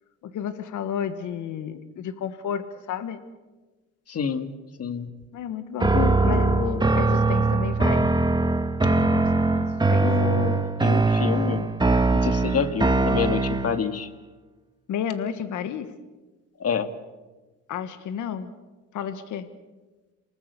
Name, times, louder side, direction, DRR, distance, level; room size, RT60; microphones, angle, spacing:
voice 1, 0.2-3.2 5.3-6.5 6.9-8.1 8.9-9.3 9.9-10.1 14.9-15.9 17.7-18.5 18.9-19.5, left 8 dB, 80° left, 11 dB, 1.6 m, -32 dB
voice 2, 4.1-4.5 4.8-5.1 5.9-6.9 10.0-11.7 12.1-14.1 16.6-16.9, left 7 dB, 55° left, 9 dB, 1.9 m, -28 dB
sound 1, 5.8-13.9, right 3 dB, 15° right, 1.5 m, -22 dB
28.0 x 19.0 x 6.9 m, 1.2 s
cardioid pair, 90°, 30 cm